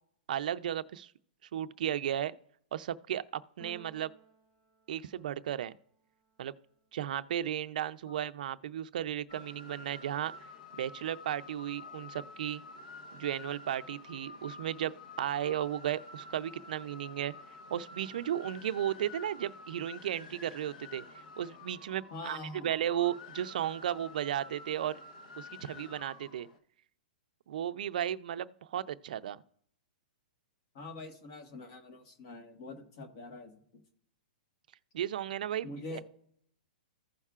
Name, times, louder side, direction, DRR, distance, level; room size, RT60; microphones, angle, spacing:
voice 1, 0.3-1.1 1.5-2.4 2.7-4.1 4.9-5.7 6.4-6.5 6.9-10.3 10.8-12.6 13.1-17.3 17.7-21.0 21.4-25.0 25.4-26.5 27.5-29.4 34.9-36.0, right 10 dB, 60° right, 0.5 m, -35 dB
Keyboard (musical), 3.6-5.7, right 5 dB, 15° left, 2.7 m, -57 dB
sound 1, 9.3-26.6, left 3 dB, 55° left, 1.2 m, -50 dB
voice 2, 22.1-22.7 30.7-33.8 35.6-36.0, left 2 dB, 40° left, 1.5 m, -44 dB
15.5 x 5.5 x 2.4 m
hypercardioid pair, 165°, 5 cm